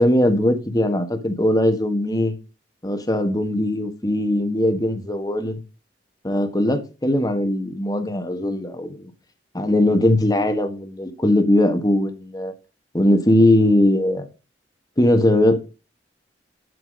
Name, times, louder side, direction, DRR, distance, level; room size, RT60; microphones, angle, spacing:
voice 1, 0.0-2.3 2.8-5.6 6.2-9.1 9.5-12.5 12.9-14.3 15.0-15.6, left 1 dB, 20° left, 1.5 m, -20 dB
9.8 x 7.9 x 4.1 m
head